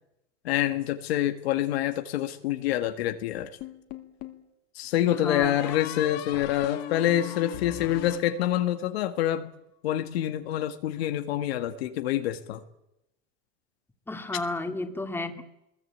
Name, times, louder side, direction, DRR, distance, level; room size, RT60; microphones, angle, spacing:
voice 1, 0.4-3.5 4.8-9.5 9.8-12.6, left 12 dB, 85° left, 8 dB, 1.9 m, -27 dB
sound 1, 3.6-4.5 5.4-8.9, left 11 dB, 55° left, 2.7 m, -39 dB
voice 2, 5.0-5.8 14.1-15.4, left 2 dB, 5° left, 5 dB, 2.4 m, -33 dB
22.0 x 21.5 x 8.7 m, 0.88 s
supercardioid pair, 120°, 30 cm